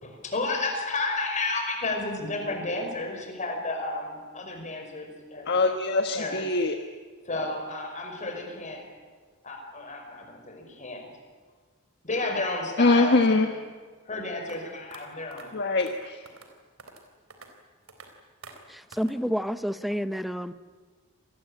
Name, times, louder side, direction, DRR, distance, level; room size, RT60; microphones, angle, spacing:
voice 1, 0.0-5.6 6.1-6.5 7.3-8.9 9.4-11.1 12.0-13.4 14.1-15.8, left 2 dB, 35° left, 4 dB, 5.3 m, -32 dB
voice 2, 5.5-6.8 12.8-13.5 15.5-16.3, left 3 dB, 55° left, 5 dB, 1.4 m, -23 dB
sound 1, 14.5-14.6 14.9-15.0 15.3-15.5 15.8-16.0 16.3-16.5 16.8-17.0 17.3-17.5 17.9-18.1 18.4-18.6 18.9-19.1, right 4 dB, 70° right, 3.7 m, -47 dB
voice 3, 18.7-20.5, equal, ahead, 12 dB, 0.8 m, -29 dB
27.5 x 20.0 x 8.8 m, 1.5 s
head